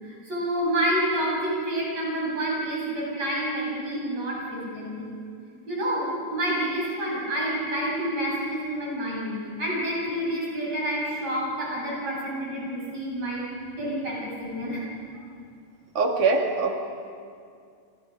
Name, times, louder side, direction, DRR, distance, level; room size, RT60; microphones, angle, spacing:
voice 1, 0.0-5.1 5.7-9.3 9.6-13.5 13.8-14.8, right 1 dB, 55° right, -4 dB, 9.1 m, -28 dB
voice 2, 16.0-16.8, right 4 dB, 75° right, 2 dB, 3.7 m, -22 dB
29.5 x 26.5 x 5.5 m, 2.3 s
omnidirectional pair, 3.6 m